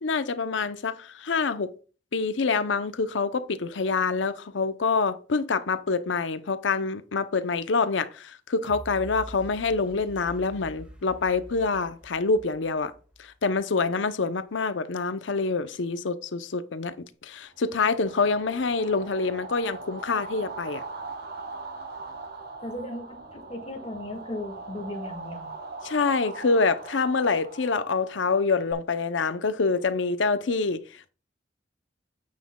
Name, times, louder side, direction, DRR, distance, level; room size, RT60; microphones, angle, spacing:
voice 1, 0.0-1.7 2.1-12.9 13.2-16.9 17.2-20.8 25.8-31.1, left 4 dB, 75° left, 0.7 m, -26 dB
sound 1, 8.6-13.5 14.0-14.1, equal, 5° right, 1.7 m, -45 dB
sound 2, 17.6-28.7, right 3 dB, 60° right, 1.3 m, -41 dB
voice 2, 22.6-25.5, left 1 dB, 35° left, 1.7 m, -36 dB
9.5 x 8.4 x 2.3 m
head